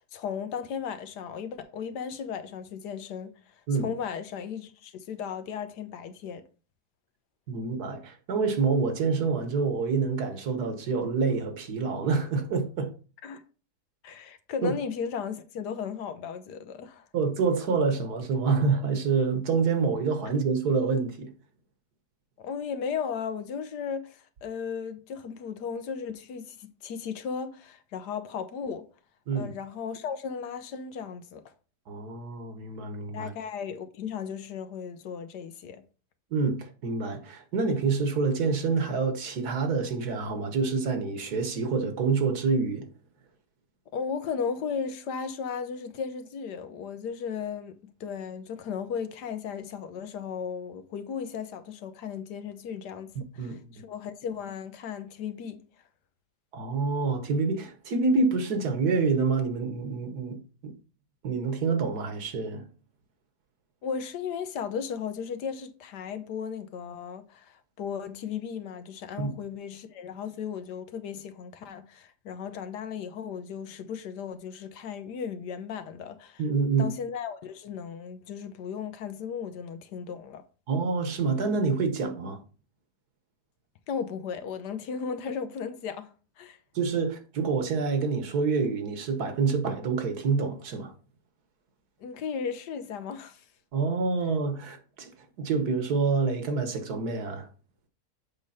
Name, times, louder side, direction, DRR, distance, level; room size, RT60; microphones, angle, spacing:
voice 1, 0.1-6.4 13.2-13.4 14.0-17.0 22.4-28.8 29.3-31.4 33.1-35.8 43.9-55.6 63.8-76.4 76.8-80.4 83.9-86.1 86.4-86.6 92.0-93.4, left 6 dB, 80° left, 1.4 m, -35 dB
voice 2, 7.5-12.9 14.6-14.7 17.1-21.3 29.3-29.5 31.9-33.3 36.3-42.9 53.4-53.7 56.5-60.4 60.6-60.7 61.2-62.7 69.2-69.3 76.4-76.9 80.7-82.4 86.7-90.9 93.7-95.1 95.4-97.5, right 4 dB, 70° right, 1.6 m, -27 dB
7.6 x 4.9 x 4.1 m
omnidirectional pair, 1.8 m